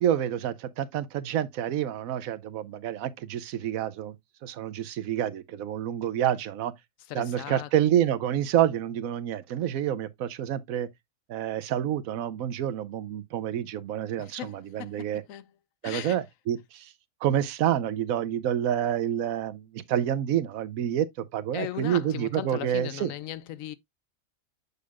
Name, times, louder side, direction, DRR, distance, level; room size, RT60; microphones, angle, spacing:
voice 1, 0.0-4.1 4.4-6.7 7.1-10.9 11.3-15.2 15.8-16.9 17.2-21.1 21.3-23.1, right 10 dB, 85° right, 1.1 m, -28 dB
voice 2, 7.1-7.7 14.2-15.4 15.8-16.2 21.5-23.8, left 12 dB, 75° left, 1.0 m, -38 dB
6.8 x 6.5 x 2.3 m
omnidirectional pair, 1.4 m